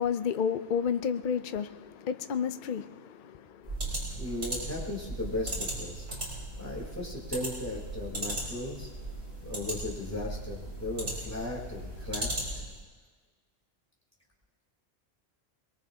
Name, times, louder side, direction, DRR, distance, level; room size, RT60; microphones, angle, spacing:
voice 1, 0.0-3.8, left 7 dB, 50° left, 0.7 m, -31 dB
sound 1, 3.6-12.8, right 1 dB, 75° right, 5.5 m, -37 dB
voice 2, 3.9-6.1 6.6-8.9 9.4-12.3, left 2 dB, 15° left, 3.7 m, -37 dB
23.0 x 21.5 x 2.9 m
omnidirectional pair, 1.2 m